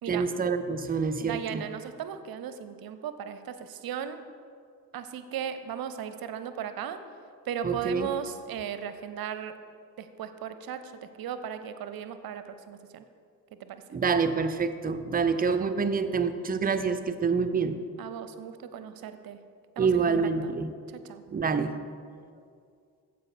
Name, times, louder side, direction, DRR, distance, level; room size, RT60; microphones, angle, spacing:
voice 1, 0.1-1.6 7.6-8.1 13.9-17.8 19.8-20.7 21.3-21.8, right 5 dB, 20° right, 10 dB, 0.6 m, -27 dB
voice 2, 1.2-4.2 4.9-7.0 7.5-9.6 10.0-13.0 13.6-13.8 18.0-19.4 19.8-20.5 20.9-21.2, right 8 dB, 45° right, 11 dB, 0.7 m, -37 dB
14.5 x 5.0 x 4.4 m, 2.3 s
figure-of-eight pair, 40°, 50 cm